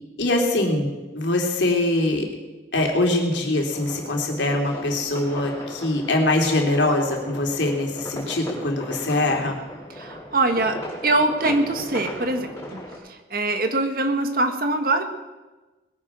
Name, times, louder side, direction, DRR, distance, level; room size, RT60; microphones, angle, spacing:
voice 1, 0.2-0.9 1.1-2.3 2.7-9.6, left 2 dB, 85° left, 1 dB, 3.1 m, -23 dB
sound 1, 3.7-13.0, left 1 dB, 15° left, 5.2 m, -37 dB
voice 2, 10.0-10.8 11.0-12.8 13.3-15.0, right 2 dB, 55° right, 6 dB, 1.7 m, -23 dB
21.0 x 9.7 x 6.2 m, 1.2 s
head